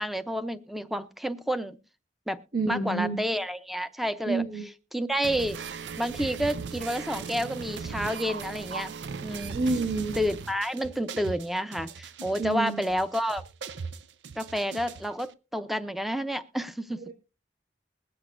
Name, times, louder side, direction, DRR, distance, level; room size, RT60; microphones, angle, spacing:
voice 1, 0.0-1.8 2.3-2.4 2.7-4.5 4.9-5.6 6.0-8.9 9.2-9.6 10.2-13.4 14.4-17.0, equal, ahead, 12 dB, 0.6 m, -30 dB
voice 2, 2.5-3.2 4.3-4.7 9.5-10.2 12.4-12.8 17.1-17.2, right 3 dB, 55° right, -1 dB, 1.7 m, -28 dB
sound 1, 5.2-15.3, right 5 dB, 90° right, 0.5 m, -38 dB
21.5 x 7.9 x 2.5 m, 0.31 s
head